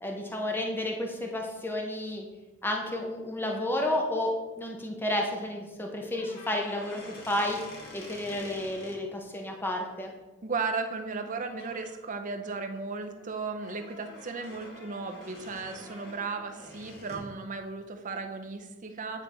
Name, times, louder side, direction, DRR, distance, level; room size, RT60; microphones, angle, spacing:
voice 1, 0.0-2.3 2.6-4.3 4.6-7.6 7.9-10.1, left 1 dB, 10° left, 1 dB, 0.7 m, -31 dB
sound 1, 6.1-9.0 11.1-11.3 11.6-11.9 12.4-17.3, left 1 dB, 50° left, 1.5 m, -47 dB
voice 2, 10.4-19.2, right 4 dB, 35° right, 6 dB, 0.6 m, -35 dB
9.0 x 3.2 x 4.1 m, 1.1 s
head